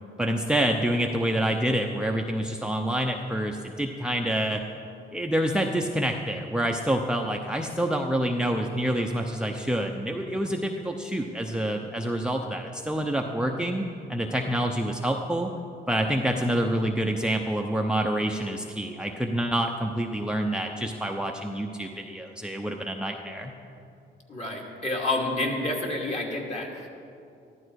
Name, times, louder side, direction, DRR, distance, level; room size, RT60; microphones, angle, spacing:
voice 1, 0.2-4.6 5.1-15.5 15.9-23.5, right 1 dB, 5° right, 3 dB, 0.7 m, -27 dB
voice 2, 24.3-26.9, left 2 dB, 35° left, -1 dB, 2.7 m, -29 dB
14.0 x 12.0 x 4.8 m, 2.6 s
cardioid pair, 90°, 20 cm